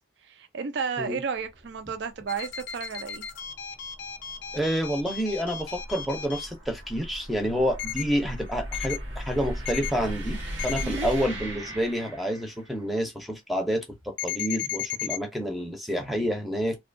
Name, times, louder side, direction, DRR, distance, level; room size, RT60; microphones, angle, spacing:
voice 1, 0.2-3.2 10.8-11.1, right 5 dB, 60° right, 0.4 m, -32 dB
sound 1, 1.4-12.8, equal, 80° right, 0.9 m, -38 dB
sound 2, 2.3-6.5 7.8-8.0 8.7-9.0 9.7-9.9 10.6-10.8 14.2-15.2, left 10 dB, 60° left, 0.4 m, -34 dB
voice 2, 4.5-10.4 10.6-13.8 14.2-16.8, equal, ahead, 0.5 m, -28 dB
2.6 x 2.2 x 2.5 m
head